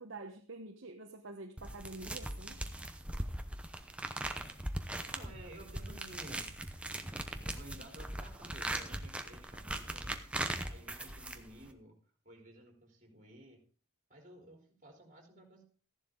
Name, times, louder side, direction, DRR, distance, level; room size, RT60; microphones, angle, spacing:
voice 1, 0.0-2.6, right 2 dB, 60° right, 3 dB, 1.1 m, -47 dB
sound 1, 1.6-11.7, right 1 dB, 5° right, 0.8 m, -40 dB
voice 2, 5.1-6.5 7.0-10.3 10.6-12.0 12.2-13.6 14.1-15.6, right 1 dB, 35° right, 1 dB, 4.1 m, -54 dB
14.5 x 11.0 x 3.9 m, 0.41 s
head